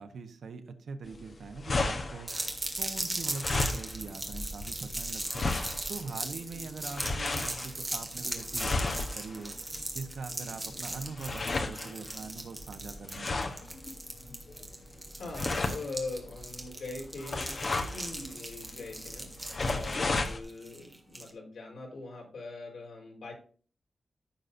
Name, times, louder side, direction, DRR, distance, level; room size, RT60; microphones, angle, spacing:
voice 1, 0.0-2.3 2.8-5.5 5.9-9.6 9.9-13.5, right 4 dB, 80° right, 7 dB, 1.1 m, -42 dB
sound 1, 1.0-20.4, left 3 dB, 45° left, 1.1 m, -35 dB
sound 2, 2.3-21.3, right 2 dB, 20° right, 1.7 m, -38 dB
voice 2, 15.1-19.3 19.7-23.3, left 3 dB, 70° left, -1 dB, 4.4 m, -42 dB
14.5 x 6.6 x 2.7 m, 0.41 s
wide cardioid pair, 155°, 0 cm